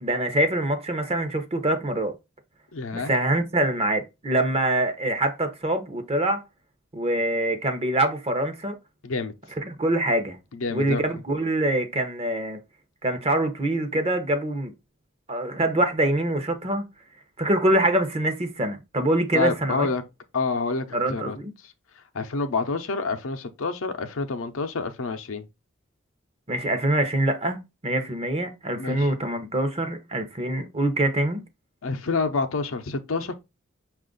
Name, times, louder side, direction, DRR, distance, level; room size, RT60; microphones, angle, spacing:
voice 1, 0.0-2.1 2.9-6.4 6.9-8.8 9.6-10.4 10.7-12.6 13.0-14.7 15.3-16.8 17.4-19.9 20.9-21.5 26.5-31.4, right 1 dB, 30° right, 0.7 m, -24 dB
voice 2, 2.7-3.1 9.0-9.3 10.5-11.0 19.3-20.0 20.3-21.4 21.6-21.7 22.1-25.5 28.8-29.1 31.8-33.3, left 4 dB, 70° left, 0.6 m, -28 dB
5.7 x 2.4 x 3.8 m
head